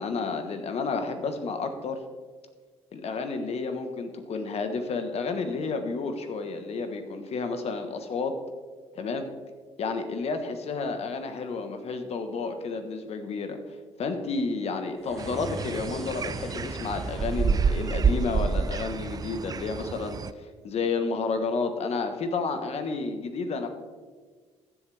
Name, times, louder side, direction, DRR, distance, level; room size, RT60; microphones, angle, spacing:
voice 1, 0.0-2.0 2.9-8.3 8.9-9.3 9.8-13.6 14.0-23.7, left 4 dB, 60° left, 7 dB, 1.4 m, -31 dB
sound 1, 14.9-19.4, equal, 5° left, 2.0 m, -43 dB
sound 2, 15.2-20.3, right 5 dB, 30° right, 0.4 m, -28 dB
14.5 x 7.5 x 3.5 m, 1.5 s
supercardioid pair, 75°, 12 cm